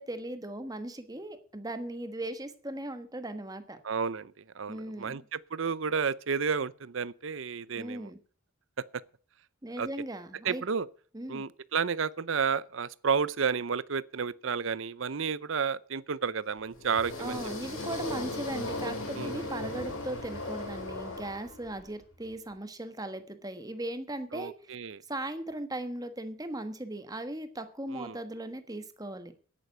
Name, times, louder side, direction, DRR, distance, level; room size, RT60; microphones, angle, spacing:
voice 1, 0.0-3.8 4.7-5.3 7.7-8.2 9.6-10.6 11.1-11.4 17.2-24.5 25.1-29.3, right 1 dB, 15° right, 1.3 m, -38 dB
voice 2, 3.8-8.1 9.8-9.9 10.4-10.9 11.3-17.4 19.2-19.3 24.3-25.0 27.9-28.2, right 6 dB, 65° right, 0.6 m, -31 dB
sound 1, 16.7-21.9, left 2 dB, 75° left, 5.0 m, -37 dB
10.0 x 9.2 x 8.0 m
head